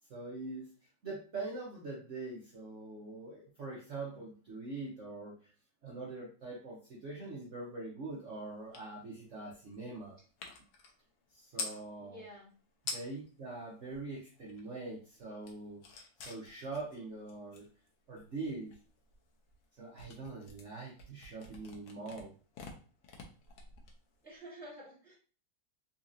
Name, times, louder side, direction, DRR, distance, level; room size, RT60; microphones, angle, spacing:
voice 1, 0.1-0.7 1.0-5.4 5.8-10.2 11.3-12.2 12.9-15.8 16.2-17.7 18.1-18.8 19.8-22.3, right 3 dB, 55° right, -4 dB, 0.9 m, -43 dB
sound 1, 8.7-8.9 9.2-11.8 12.5-12.6 12.8-13.3 13.7-14.8 15.1-24.4, left 4 dB, 85° left, 1.5 m, -47 dB
voice 2, 12.0-12.5 24.2-25.2, equal, 5° left, -6 dB, 1.1 m, -50 dB
4.0 x 2.8 x 2.5 m, 0.38 s
omnidirectional pair, 2.1 m